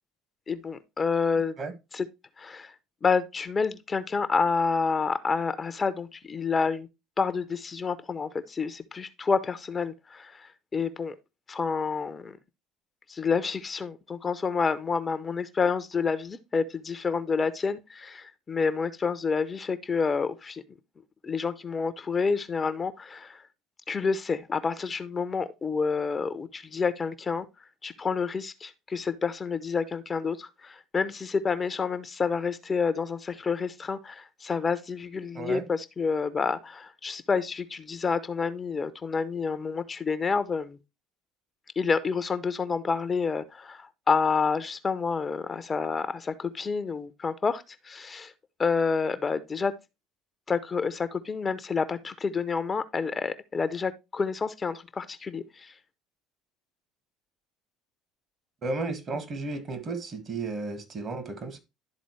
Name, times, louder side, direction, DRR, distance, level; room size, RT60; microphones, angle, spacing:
voice 1, 0.5-1.5 1.9-2.1 2.4-2.7 3.0-6.9 7.2-11.1 11.5-12.4 13.1-20.6 21.2-23.4 23.9-27.5 27.8-40.8 41.8-48.3 48.6-49.7 50.5-55.7, left 5 dB, 30° left, 0.7 m, -29 dB
voice 2, 58.6-61.6, right 3 dB, 40° right, 1.6 m, -33 dB
11.5 x 3.9 x 3.1 m
hypercardioid pair, 65°, 0 cm